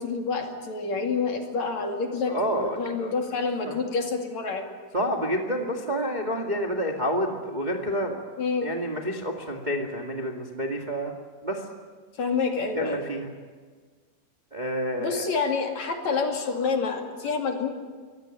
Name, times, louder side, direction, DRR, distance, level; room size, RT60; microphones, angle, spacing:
voice 1, 0.0-4.7 8.4-8.7 12.2-13.0 15.0-17.7, left 4 dB, 50° left, 3 dB, 3.3 m, -28 dB
voice 2, 2.3-3.1 3.7-3.8 4.9-8.2 8.6-11.1 11.4-11.6 12.7-13.3 14.5-15.2, equal, 20° right, 1 dB, 1.1 m, -29 dB
24.5 x 18.0 x 9.2 m, 1.5 s
omnidirectional pair, 4.6 m